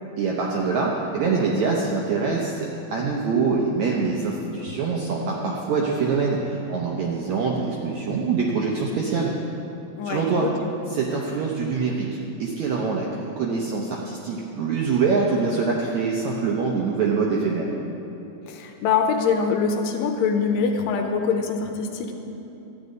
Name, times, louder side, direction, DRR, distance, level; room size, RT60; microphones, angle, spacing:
voice 1, 0.2-9.3 10.0-10.5 10.9-17.7, right 4 dB, 75° right, -2 dB, 1.7 m, -24 dB
voice 2, 10.0-10.5 18.5-22.1, left 5 dB, 80° left, 4 dB, 2.3 m, -24 dB
13.5 x 5.3 x 9.3 m, 2.9 s
omnidirectional pair, 4.3 m